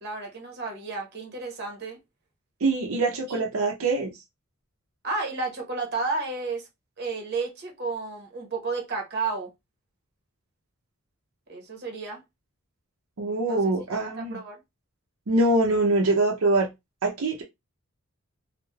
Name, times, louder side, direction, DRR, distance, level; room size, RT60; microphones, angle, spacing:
voice 1, 0.0-2.0 3.3-3.4 5.0-6.7 7.0-9.5 11.5-12.2 13.5-13.6 13.9-14.6, right 4 dB, 50° right, 0.9 m, -32 dB
voice 2, 2.6-4.1 13.2-14.4 15.3-16.7 17.0-17.4, right 2 dB, 80° right, 0.6 m, -24 dB
3.1 x 2.2 x 2.2 m
head